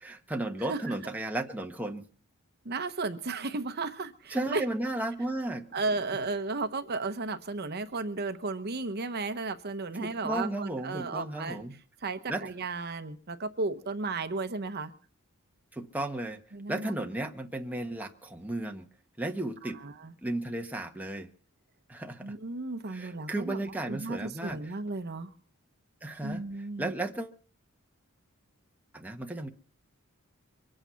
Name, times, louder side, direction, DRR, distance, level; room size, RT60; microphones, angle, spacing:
voice 1, 0.0-2.1 4.3-5.7 10.0-11.7 12.3-12.5 15.7-16.4 16.7-18.9 19.2-19.8 20.2-21.3 21.9-22.3 22.9-24.7 26.0-26.4 26.8-27.3 28.9-29.5, right 1 dB, 10° right, 3 dB, 1.2 m, -34 dB
voice 2, 0.6-0.9 2.6-4.6 5.7-11.6 12.0-14.9 16.5-16.9 19.6-20.1 22.2-25.3 26.2-26.9, right 3 dB, 50° right, 9 dB, 0.9 m, -34 dB
24.0 x 8.8 x 5.7 m, 0.42 s
head